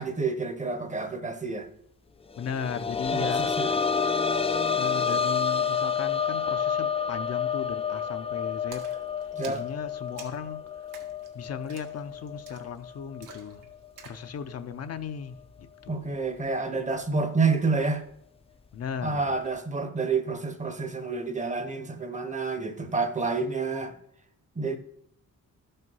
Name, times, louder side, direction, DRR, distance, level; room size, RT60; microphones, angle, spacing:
voice 1, 0.0-1.7 3.1-3.7 9.3-9.6 15.9-18.0 19.0-23.9 24.6-24.8, right 4 dB, 25° right, 0.8 m, -29 dB
voice 2, 2.4-3.9 4.8-8.9 9.5-10.6 11.3-13.7 14.0-16.3 18.7-19.3, left 6 dB, 55° left, 0.7 m, -37 dB
sound 1, 2.4-13.9 14.2-14.3 15.9-16.0, left 6 dB, 20° left, 0.3 m, -29 dB
Splash splatter, 8.7-14.3, right 6 dB, 85° right, 1.7 m, -50 dB
13.0 x 5.5 x 5.5 m
wide cardioid pair, 160°, 31 cm